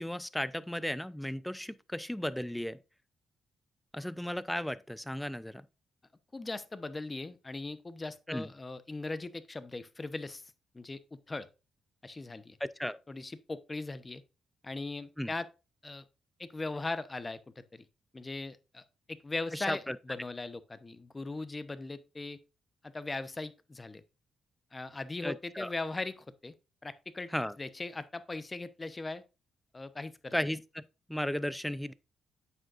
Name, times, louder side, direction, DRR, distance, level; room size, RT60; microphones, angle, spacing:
voice 1, 0.0-2.8 3.9-5.6 8.3-8.5 12.6-13.0 15.2-15.3 19.5-20.0 25.2-25.7 27.3-27.5 30.3-30.8 31.1-31.9, left 1 dB, 5° left, 0.5 m, -35 dB
voice 2, 6.3-11.5 12.0-12.6 13.1-14.2 14.6-15.5 15.8-16.0 16.4-17.8 18.1-22.4 22.8-24.0 24.7-26.5 26.8-27.3 27.6-29.2 29.7-30.4, left 3 dB, 25° left, 0.9 m, -39 dB
9.0 x 6.4 x 2.5 m
cardioid pair, 70°, 0 cm